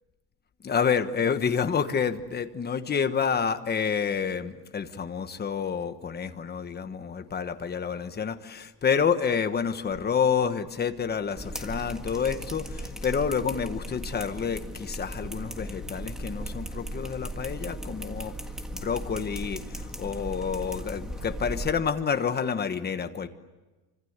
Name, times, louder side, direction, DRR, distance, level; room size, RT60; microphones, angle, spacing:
voice 1, 0.6-18.3 18.7-23.3, left 6 dB, 20° left, 8 dB, 1.3 m, -28 dB
sound 1, 11.4-21.7, right 1 dB, ahead, 1.7 m, -37 dB
27.0 x 25.5 x 8.1 m, 1.2 s
cardioid pair, 175°, 43 cm